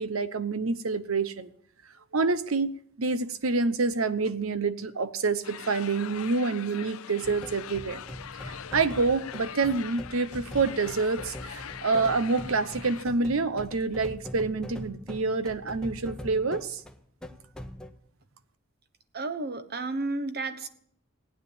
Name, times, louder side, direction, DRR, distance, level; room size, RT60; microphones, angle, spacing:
voice 1, 0.0-1.5 2.1-8.0 8.4-16.8, right 4 dB, 75° right, 0.9 m, -27 dB
sound 1, 5.4-13.1, left 8 dB, 85° left, 0.6 m, -42 dB
sound 2, 7.2-17.9, equal, 5° left, 0.9 m, -42 dB
voice 2, 19.1-20.7, right 3 dB, 50° right, 1.3 m, -32 dB
16.0 x 9.9 x 8.7 m
head